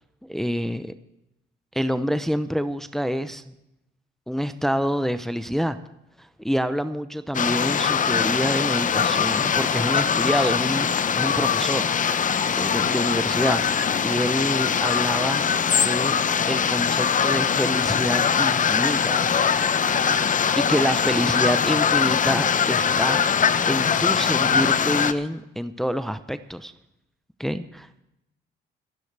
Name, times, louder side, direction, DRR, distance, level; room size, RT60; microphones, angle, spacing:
voice 1, 0.3-0.9 1.7-3.5 4.3-5.8 6.4-12.3 12.6-13.6 14.0-15.5 15.8-16.2 16.5-19.8 20.6-23.2 23.7-26.7 27.4-27.9, equal, ahead, 11 dB, 0.7 m, -27 dB
sound 1, 7.3-25.1, left 7 dB, 40° left, 0.7 m, -22 dB
26.5 x 11.5 x 3.4 m, 0.86 s
cardioid pair, 90°, 20 cm